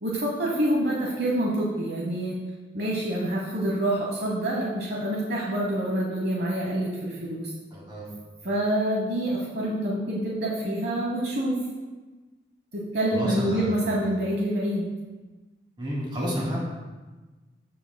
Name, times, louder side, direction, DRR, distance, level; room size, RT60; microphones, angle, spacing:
voice 1, 0.0-2.4 2.7-7.5 8.4-11.6 12.7-14.8, right 1 dB, 55° right, -3 dB, 1.1 m, -27 dB
voice 2, 7.7-8.1 13.1-14.1 15.8-16.6, equal, 25° right, -5 dB, 2.5 m, -31 dB
14.5 x 6.0 x 2.2 m, 1.2 s
head